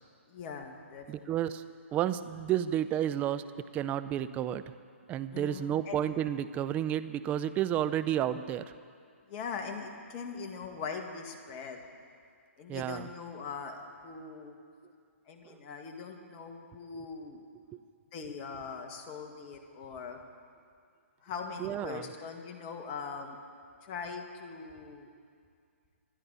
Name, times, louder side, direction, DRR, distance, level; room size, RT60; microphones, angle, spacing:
voice 1, 0.3-1.3 5.3-6.0 9.3-11.8 12.6-14.5 15.3-17.4 18.1-20.2 21.2-23.4 23.8-25.1, left 5 dB, 30° left, 3 dB, 1.8 m, -41 dB
voice 2, 1.1-1.6 1.9-3.4 3.7-4.7 5.1-8.6 12.7-13.1 15.5-15.6 21.6-22.1, right 11 dB, 20° right, 12 dB, 0.5 m, -31 dB
26.5 x 11.0 x 4.1 m, 2.2 s
hypercardioid pair, 135°, 7 cm